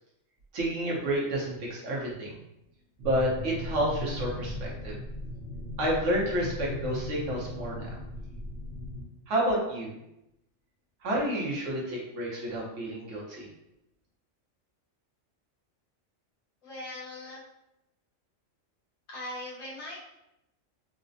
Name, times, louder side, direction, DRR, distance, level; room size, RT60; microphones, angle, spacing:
voice 1, 0.5-2.4 3.0-5.0 5.8-8.0 9.3-9.9 11.0-13.5, right 1 dB, 65° right, -4 dB, 1.2 m, -30 dB
sound 1, 3.0-9.0, left 1 dB, 50° left, 1.5 m, -38 dB
voice 2, 16.6-17.4 19.1-20.0, left 1 dB, 80° left, -6 dB, 1.5 m, -40 dB
4.0 x 2.2 x 2.6 m, 0.87 s
omnidirectional pair, 1.4 m